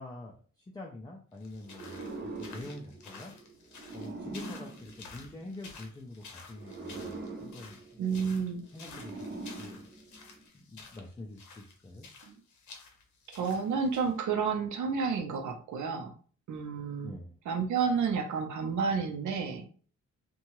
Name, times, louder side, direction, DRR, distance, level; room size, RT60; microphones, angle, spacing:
voice 1, 0.0-3.3 3.9-8.3 8.7-9.8 10.5-12.1 17.0-17.3, left 2 dB, 15° left, 0 dB, 0.3 m, -46 dB
sound 1, 1.4-14.2, left 4 dB, 85° left, 0.7 m, -51 dB
sound 2, 1.7-5.8 6.5-10.5, right 3 dB, 35° right, 0.6 m, -43 dB
voice 2, 8.0-8.7 12.3-12.4 13.3-16.1 16.5-17.2 17.5-19.6, right 5 dB, 80° right, 4 dB, 0.6 m, -30 dB
2.8 x 2.2 x 3.0 m, 0.42 s
wide cardioid pair, 155°, 29 cm